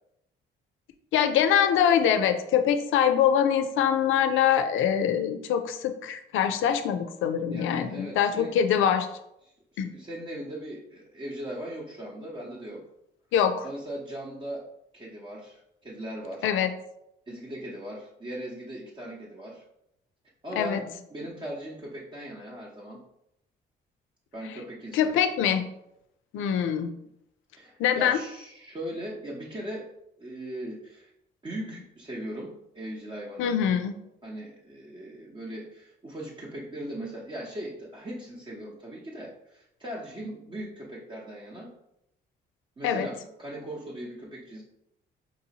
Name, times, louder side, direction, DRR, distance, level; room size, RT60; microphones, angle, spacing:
voice 1, 1.1-9.1 9.8-9.9 13.3-13.6 16.4-16.7 20.6-20.8 24.9-25.6 26.3-26.9 27.8-28.2 33.4-34.0 42.8-43.1, left 8 dB, 80° left, 8 dB, 0.4 m, -24 dB
voice 2, 7.5-8.6 9.4-12.9 13.6-14.7 14.9-16.5 17.3-19.6 20.4-23.0 24.3-25.2 27.5-31.1 31.4-33.6 34.2-41.7 42.8-44.6, right 1 dB, 25° right, -5 dB, 0.8 m, -39 dB
4.9 x 2.7 x 2.8 m, 0.81 s
cardioid pair, 90°, 20 cm